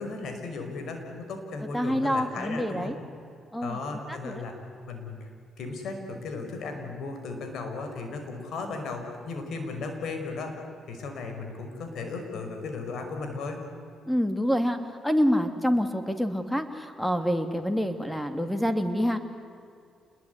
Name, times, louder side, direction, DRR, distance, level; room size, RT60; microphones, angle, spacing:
voice 1, 0.0-2.9 3.6-4.5 4.9-5.3 5.6-10.5 10.9-13.6, left 3 dB, 70° left, 5 dB, 5.5 m, -36 dB
voice 2, 1.7-3.0 3.5-3.8 4.1-4.4 14.1-14.8 15.0-19.2, equal, 5° left, 8 dB, 2.6 m, -27 dB
28.0 x 21.0 x 9.7 m, 2.4 s
cardioid pair, 90°, 0 cm